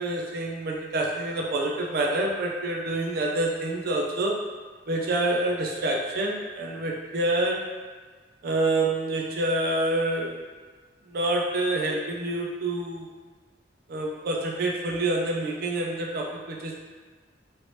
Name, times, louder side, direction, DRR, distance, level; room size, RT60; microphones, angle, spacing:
voice 1, 0.0-4.4 4.9-7.6 8.4-10.4 11.1-13.1 13.9-16.8, right 2 dB, 55° right, 0 dB, 0.4 m, -27 dB
2.9 x 2.7 x 3.1 m, 1.5 s
head